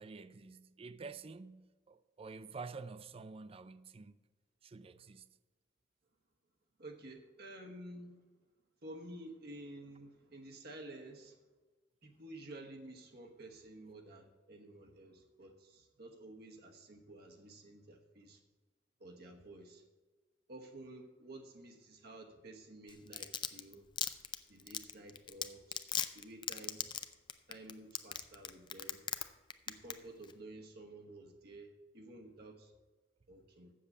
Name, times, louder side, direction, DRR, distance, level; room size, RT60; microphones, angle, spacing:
voice 1, 0.0-4.2 4.6-5.3, right 4 dB, 30° right, 0.4 m, -49 dB
voice 2, 6.8-8.2 8.8-11.4 12.0-18.4 19.0-19.8 20.5-23.9 24.5-25.9 26.1-26.8 27.5-29.0 29.7-32.7 33.3-33.7, right 1 dB, 55° right, 1.1 m, -52 dB
Domestic sounds home sounds, 22.9-29.2 29.5-29.9 30.2-30.3, left 8 dB, 25° left, 0.5 m, -37 dB
7.6 x 6.8 x 8.1 m
head